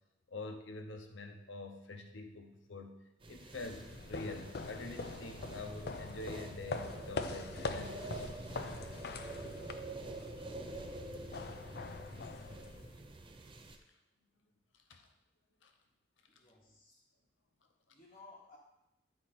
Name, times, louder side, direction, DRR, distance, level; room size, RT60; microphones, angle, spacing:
voice 1, 0.3-3.0 3.3-8.6 10.7-10.8 14.9-15.1 15.6-15.7, left 2 dB, 80° left, 5 dB, 0.9 m, -46 dB
sound 1, 3.2-13.8, right 2 dB, 25° right, 0.5 m, -47 dB
sound 2, 3.5-13.1, left 3 dB, 55° left, 0.5 m, -44 dB
voice 2, 16.3-17.0 17.9-18.6, left 3 dB, 30° left, -6 dB, 1.2 m, -58 dB
9.5 x 4.3 x 4.3 m, 0.90 s
head